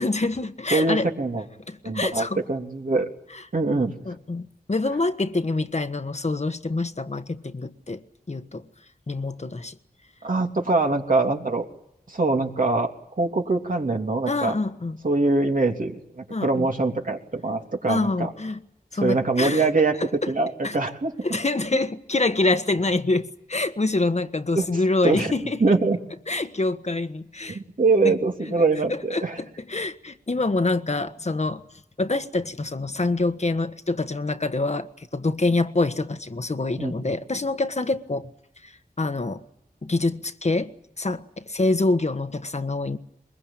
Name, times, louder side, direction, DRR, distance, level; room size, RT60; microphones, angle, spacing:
voice 1, 0.0-1.1 1.7-2.4 3.3-3.4 4.0-8.0 8.3-8.6 9.1-9.8 14.3-15.0 16.3-16.7 17.9-18.6 18.9-19.7 20.2-20.3 20.6-20.7 21.2-25.8 26.3-27.6 28.0-28.1 28.9-31.6 32.0-38.3 38.6-38.7 39.0-39.4 39.8-40.7 41.0-43.0, left 2 dB, 45° left, 1.4 m, -26 dB
voice 2, 0.7-1.4 1.8-3.1 3.5-3.9 10.2-11.6 12.1-12.9 13.2-14.6 15.0-18.3 19.0-20.0 20.3-21.1 24.5-24.6 25.0-25.3 25.6-26.0 27.5-29.4 36.8-37.1, right 3 dB, 55° right, 3.2 m, -23 dB
23.0 x 22.0 x 9.0 m
wide cardioid pair, 60°, 16 cm